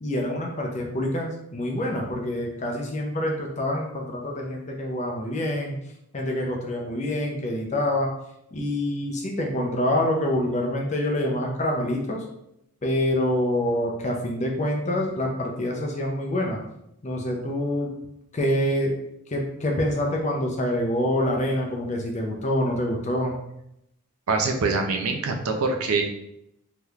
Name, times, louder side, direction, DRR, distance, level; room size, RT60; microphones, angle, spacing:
voice 1, 0.0-5.8 6.1-8.1 8.5-12.2 12.8-16.6 17.0-17.9 18.3-18.9 19.3-23.4, left 1 dB, 30° left, 0 dB, 0.5 m, -26 dB
voice 2, 24.3-26.0, right 4 dB, 75° right, 4 dB, 0.5 m, -24 dB
3.4 x 2.8 x 2.3 m, 0.79 s
head